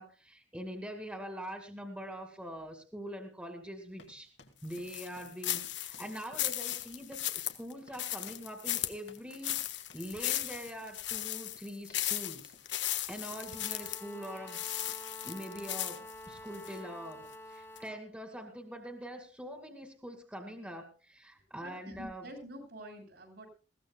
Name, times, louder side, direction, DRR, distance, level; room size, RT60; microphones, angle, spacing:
voice 1, 0.0-4.3 4.6-14.9 15.2-17.2 17.5-22.4, equal, 5° right, 4 dB, 2.2 m, -44 dB
sound 1, 3.9-12.1 12.5-12.8 13.2-13.5, left 2 dB, 70° left, 2.5 m, -60 dB
sound 2, 4.7-16.8 17.2-17.3 17.8-17.9, left 13 dB, 90° left, 1.3 m, -36 dB
sound 3, 13.3-18.1, left 1 dB, 15° left, 1.3 m, -49 dB
voice 2, 21.5-23.5, equal, 65° right, 4 dB, 7.2 m, -47 dB
21.0 x 17.0 x 2.3 m, 0.35 s
head